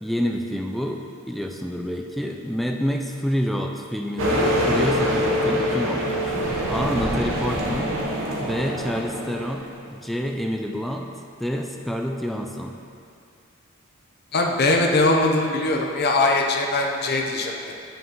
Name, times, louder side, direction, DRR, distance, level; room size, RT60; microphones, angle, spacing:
voice 1, 0.0-6.4 6.7-7.9 8.4-11.1 11.4-12.7, equal, ahead, 1 dB, 0.3 m, -28 dB
sound 1, 4.2-9.8, equal, 65° right, 1.0 m, -24 dB
voice 2, 14.3-17.7, left 2 dB, 50° left, 1 dB, 0.6 m, -21 dB
9.4 x 5.4 x 2.9 m, 2.4 s
head